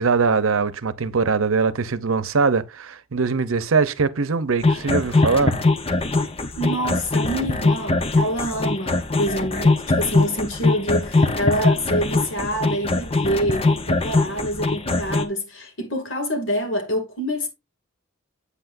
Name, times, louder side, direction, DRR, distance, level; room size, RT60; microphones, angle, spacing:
voice 1, 0.0-5.6, right 4 dB, 85° right, 0.7 m, -21 dB
sound 1, 4.6-15.2, left 3 dB, 30° left, 0.7 m, -21 dB
voice 2, 6.6-17.5, equal, 65° left, 2.3 m, -26 dB
8.1 x 8.0 x 2.5 m
head